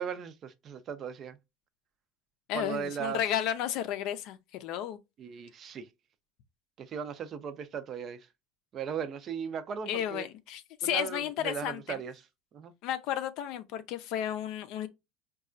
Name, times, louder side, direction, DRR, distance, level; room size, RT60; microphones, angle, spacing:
voice 1, 0.0-1.4 2.5-3.2 5.2-5.9 6.8-8.3 8.7-10.3 10.8-12.1 12.5-12.7, right 7 dB, 40° right, 0.4 m, -37 dB
voice 2, 2.5-5.0 9.9-12.0 12.8-14.9, left 11 dB, 60° left, 0.4 m, -33 dB
4.0 x 2.3 x 2.4 m
supercardioid pair, 115°, 0 cm